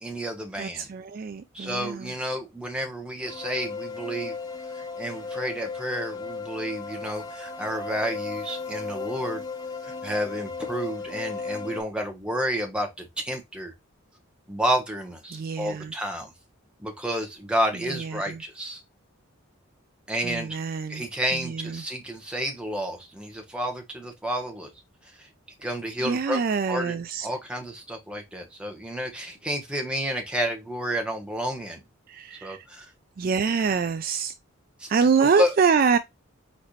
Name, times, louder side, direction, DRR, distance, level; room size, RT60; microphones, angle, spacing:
voice 1, 0.0-0.9 1.5-4.3 4.7-9.4 9.8-13.7 14.5-16.3 16.8-18.8 20.1-20.6 20.9-24.7 25.2-25.3 25.6-26.4 26.7-27.0 27.2-31.8 32.4-32.9 34.8-34.9 35.2-35.5, equal, 5° right, 1.0 m, -30 dB
voice 2, 0.6-2.1 15.3-15.9 17.9-18.4 20.2-21.0 21.3-21.8 26.0-27.3 32.1-32.7 33.2-34.3 34.9-36.0, right 5 dB, 45° right, 0.3 m, -25 dB
sound 1, 3.3-11.8, left 4 dB, 20° left, 0.8 m, -35 dB
4.3 x 4.0 x 3.1 m
head